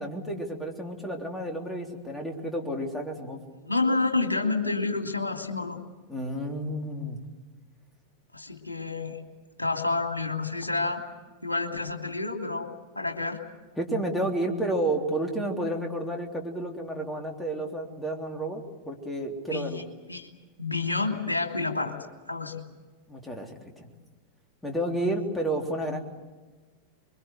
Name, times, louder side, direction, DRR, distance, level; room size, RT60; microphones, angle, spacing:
voice 1, 0.0-3.4 6.1-7.2 13.8-19.8 23.1-23.9 24.6-26.0, right 1 dB, 10° left, 2 dB, 3.5 m, -31 dB
voice 2, 3.6-5.8 8.3-9.2 9.6-11.0 11.4-12.7 12.9-13.4 19.5-19.8 20.1-20.3 20.6-21.9 22.3-22.6, left 3 dB, 80° left, 4 dB, 2.8 m, -29 dB
25.0 x 23.0 x 8.1 m, 1.3 s
figure-of-eight pair, 90°, 0 cm